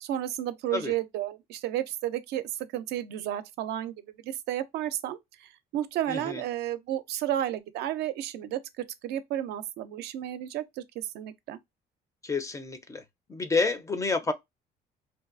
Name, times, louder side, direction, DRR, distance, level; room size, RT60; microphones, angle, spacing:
voice 1, 0.0-2.4 2.7-3.9 4.2-5.2 5.7-10.8 11.1-11.6, right 12 dB, 75° right, 0.4 m, -32 dB
voice 2, 6.1-6.4 12.2-13.0 13.3-14.3, left 4 dB, 20° left, 0.4 m, -29 dB
2.6 x 2.3 x 2.4 m
cardioid pair, 110°, 17 cm